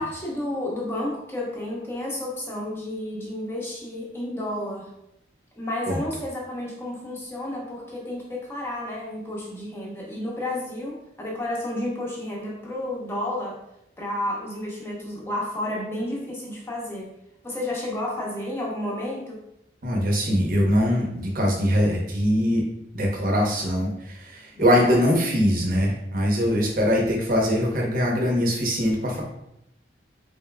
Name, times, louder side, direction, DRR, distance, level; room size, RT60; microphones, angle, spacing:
voice 1, 0.0-4.9 5.6-13.6 14.0-17.1 17.4-19.4 24.5-25.0, left 1 dB, 15° left, -3 dB, 0.9 m, -31 dB
voice 2, 19.8-22.6 22.9-29.2, equal, 50° right, -1 dB, 0.9 m, -22 dB
4.2 x 3.5 x 2.2 m, 0.80 s
head